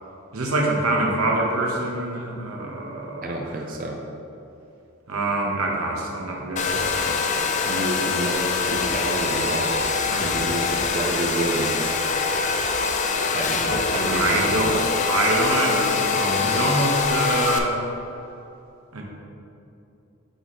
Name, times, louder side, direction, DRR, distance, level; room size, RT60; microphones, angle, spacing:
voice 1, 0.3-3.4 5.1-6.9 10.1-10.5 13.7-13.8 14.1-14.8 15.0-17.8 18.9-19.0, right 2 dB, 90° right, -1 dB, 1.0 m, -25 dB
voice 2, 3.2-4.0 7.6-12.0 13.3-14.8, right 1 dB, 40° right, 1 dB, 0.5 m, -29 dB
Domestic sounds home sounds, 6.6-17.6, left 5 dB, 35° left, 0.4 m, -24 dB
sound 1, 6.7-14.7, right 1 dB, 65° right, 1.3 m, -43 dB
8.0 x 3.0 x 4.3 m, 2.8 s
head